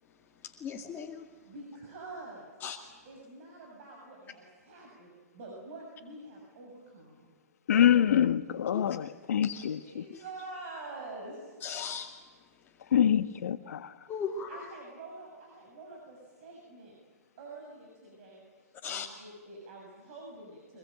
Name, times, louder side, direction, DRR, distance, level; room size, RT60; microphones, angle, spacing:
voice 1, 0.6-1.2 2.6-2.8 8.7-8.8 9.4-9.6 11.6-12.1 14.1-14.5 18.8-19.1, left 6 dB, 20° left, 2.2 m, -36 dB
voice 2, 1.4-2.5 3.1-7.3 9.8-11.6 14.5-16.9 17.4-18.4 18.9-20.8, right 2 dB, 50° right, 7.1 m, -46 dB
voice 3, 7.7-10.0 12.9-13.9, left 9 dB, 70° left, 1.1 m, -25 dB
23.5 x 21.5 x 9.1 m
hypercardioid pair, 125°, 9 cm